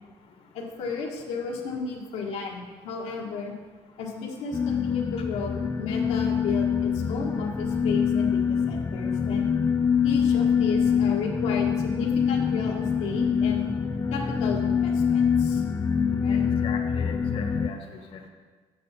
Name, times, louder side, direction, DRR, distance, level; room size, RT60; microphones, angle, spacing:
voice 1, 0.5-3.5 4.0-9.5 10.0-13.7 14.1-15.6 16.2-16.5, left 4 dB, 85° left, -1 dB, 1.6 m, -33 dB
sound 1, 4.5-17.7, left 7 dB, 25° left, 0.4 m, -25 dB
voice 2, 16.3-18.3, left 4 dB, 60° left, 5 dB, 1.2 m, -39 dB
8.3 x 7.7 x 4.2 m, 1.4 s
cardioid pair, 100°, 11 cm